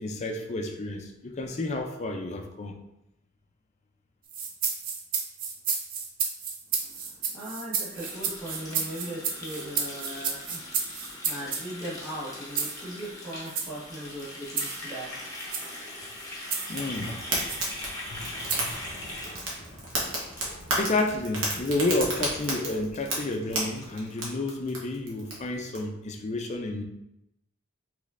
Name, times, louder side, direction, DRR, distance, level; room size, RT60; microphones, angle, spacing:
voice 1, 0.0-2.8 16.7-17.2 18.1-18.2 18.5-18.7 20.8-26.8, left 2 dB, 35° left, 4 dB, 0.5 m, -30 dB
sound 1, 4.3-11.7 12.6-12.8 13.5-13.7 14.6-14.8 15.4-15.7 16.5-16.8 17.5-17.7 18.5-18.8, right 6 dB, 45° right, 0.5 m, -31 dB
voice 2, 6.8-15.5, right 1 dB, ahead, -13 dB, 1.4 m, -39 dB
Water tap faucet, 7.9-20.9 21.2-21.4 21.8-22.1 22.4-22.5 22.7-22.8 23.2-23.3 23.5-24.5, left 1 dB, 15° left, 0.9 m, -41 dB
Fire, 16.8-25.8, right 1 dB, 65° right, 1.2 m, -33 dB
5.1 x 3.1 x 2.5 m, 0.85 s
head